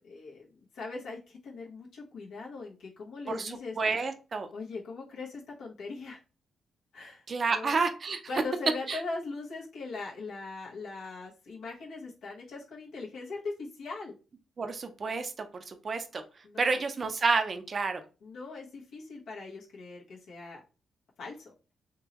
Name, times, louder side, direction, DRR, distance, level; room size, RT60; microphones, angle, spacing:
voice 1, 0.0-3.8 4.5-6.2 6.9-7.8 8.3-14.1 16.4-16.8 18.2-20.6 21.2-21.5, left 3 dB, 80° left, -4 dB, 1.1 m, -40 dB
voice 2, 3.3-4.5 7.3-8.2 8.9-9.0 14.6-16.2 16.6-18.0, right 4 dB, 40° right, 7 dB, 0.5 m, -30 dB
3.6 x 2.9 x 2.9 m, 0.32 s
cardioid pair, 110°, 0 cm